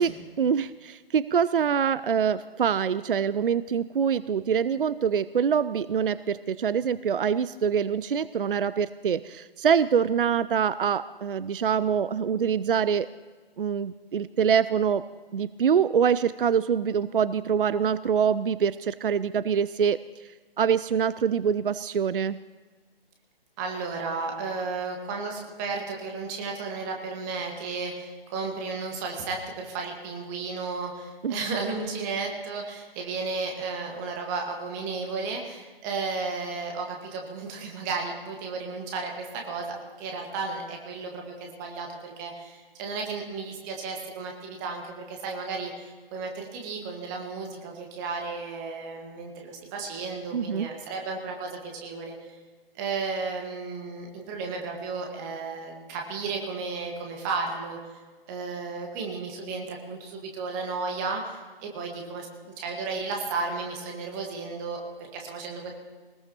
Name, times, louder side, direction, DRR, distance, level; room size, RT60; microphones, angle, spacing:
voice 1, 0.0-13.1 13.6-15.0 15.3-20.0 20.6-22.4 31.2-31.4 50.3-50.7, right 7 dB, 65° right, 16 dB, 0.4 m, -25 dB
voice 2, 23.6-52.3 52.8-57.8 58.3-65.7, right 4 dB, 20° right, 1 dB, 1.6 m, -33 dB
20.5 x 19.5 x 3.0 m, 1.3 s
figure-of-eight pair, 140°, 30 cm